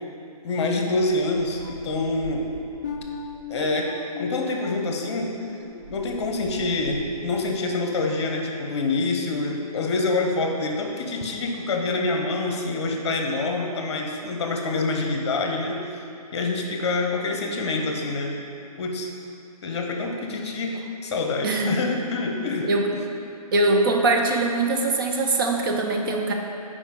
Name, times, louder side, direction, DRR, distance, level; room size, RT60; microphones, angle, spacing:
voice 1, 0.4-2.5 3.5-5.4 5.9-15.8 16.3-18.4 18.8-19.1 19.6-23.0, left 3 dB, 45° left, 2 dB, 0.9 m, -26 dB
sound 1, 1.0-3.6 4.6-4.7 4.9-7.6, right 3 dB, 80° right, 1.4 m, -43 dB
sound 2, 1.3-6.9 7.3-7.6 8.1-8.3, left 5 dB, 30° left, 0.5 m, -38 dB
voice 2, 23.5-26.3, right 2 dB, 35° right, 1 dB, 0.6 m, -22 dB
8.2 x 5.1 x 3.8 m, 2.8 s
hypercardioid pair, 150°, 20 cm